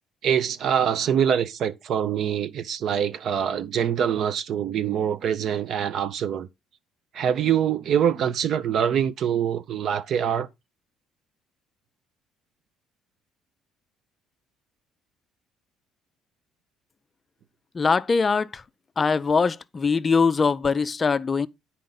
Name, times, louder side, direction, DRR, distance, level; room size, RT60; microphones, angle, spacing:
voice 1, 0.2-6.5 7.1-10.5, right 8 dB, 55° right, 0.5 m, -24 dB
voice 2, 17.7-18.5 19.0-21.5, left 5 dB, 25° left, 0.4 m, -22 dB
9.2 x 4.3 x 3.8 m
cardioid pair, 120°, 0 cm